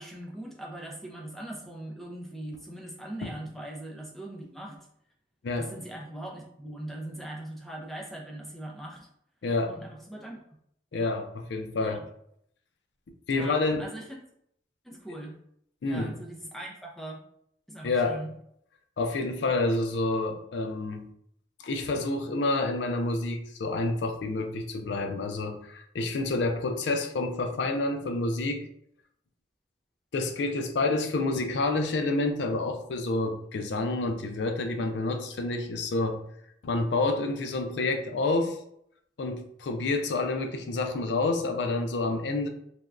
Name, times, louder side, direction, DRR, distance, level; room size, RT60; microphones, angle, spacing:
voice 1, 0.0-4.8 5.6-9.1 9.7-10.4 11.8-11.9 13.3-14.2 14.8-15.4 15.8-17.2 17.7-18.3, right 1 dB, ahead, -1 dB, 0.4 m, -40 dB
voice 2, 5.4-5.7 9.4-9.8 10.9-12.0 13.3-13.9 15.8-16.2 17.8-18.2 19.0-21.1 21.6-28.7 30.1-36.2 36.6-38.6 39.2-42.5, left 2 dB, 75° left, 5 dB, 0.4 m, -28 dB
3.3 x 2.2 x 2.4 m, 0.71 s
head